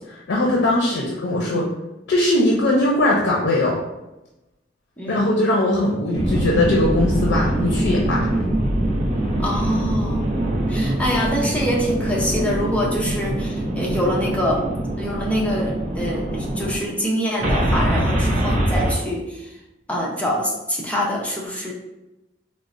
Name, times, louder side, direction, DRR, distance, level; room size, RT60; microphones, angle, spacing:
voice 1, 0.1-1.7 2.1-3.8 5.1-8.3, left 1 dB, 80° left, -2 dB, 0.5 m, -20 dB
sound 1, 6.1-16.8 17.4-18.9, right 1 dB, 40° right, 0.5 m, -23 dB
voice 2, 9.4-10.3 10.7-14.6 15.0-19.2 19.9-21.7, equal, 10° left, -3 dB, 0.5 m, -25 dB
3.9 x 2.0 x 2.5 m, 0.97 s
head